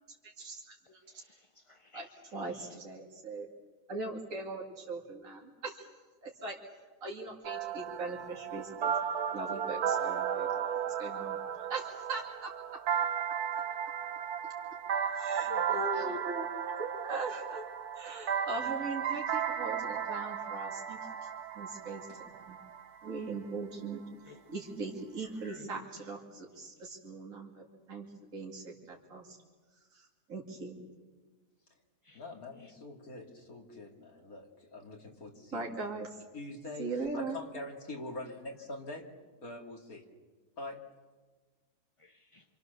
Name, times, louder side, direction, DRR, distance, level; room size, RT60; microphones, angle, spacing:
voice 1, 0.2-1.2 1.9-3.5 3.9-5.9 6.2-6.6 7.0-8.9 9.3-12.5 15.1-16.5 16.8-17.6 17.9-21.3 21.5-22.1 22.5-22.6 23.0-28.1 28.3-29.4 29.9-30.8 35.5-36.1 36.8-37.4, right 3 dB, 55° right, -2 dB, 3.0 m, -40 dB
voice 2, 1.2-2.0 15.5-16.2 24.3-24.5 25.4-25.7 32.1-32.2 42.0-42.4, left 5 dB, 30° left, 6 dB, 0.7 m, -51 dB
sound 1, 7.4-23.2, right 8 dB, 80° right, 1.6 m, -35 dB
voice 3, 32.1-35.7 36.3-39.1 39.4-40.0 40.6-40.8, left 2 dB, 65° left, 1 dB, 3.1 m, -44 dB
27.0 x 27.0 x 6.9 m, 1.3 s
omnidirectional pair, 1.6 m